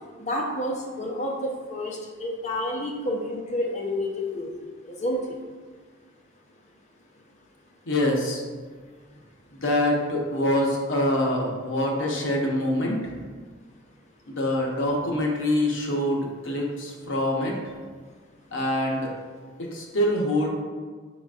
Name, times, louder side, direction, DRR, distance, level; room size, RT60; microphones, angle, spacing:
voice 1, 0.2-4.5 4.8-5.4, left 1 dB, 35° left, -1 dB, 0.6 m, -29 dB
voice 2, 7.9-8.4 9.5-13.1 14.3-17.6 18.5-19.1 19.6-20.5, left 1 dB, 70° left, -1 dB, 0.8 m, -25 dB
4.8 x 3.9 x 2.4 m, 1.5 s
head